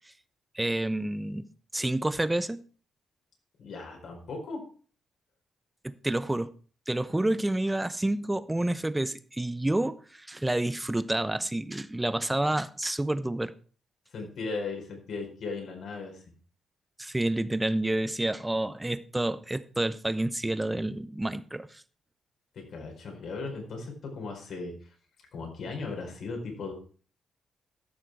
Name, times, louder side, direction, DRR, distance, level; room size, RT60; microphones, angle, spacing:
voice 1, 0.5-2.6 5.8-6.5 6.9-13.5 17.0-21.8, right 1 dB, 10° right, 0.8 m, -29 dB
voice 2, 3.6-4.6 14.1-16.2 22.5-24.7 25.3-26.7, left 3 dB, 70° left, 4.6 m, -37 dB
13.5 x 6.6 x 4.7 m
cardioid pair, 80°, 0 cm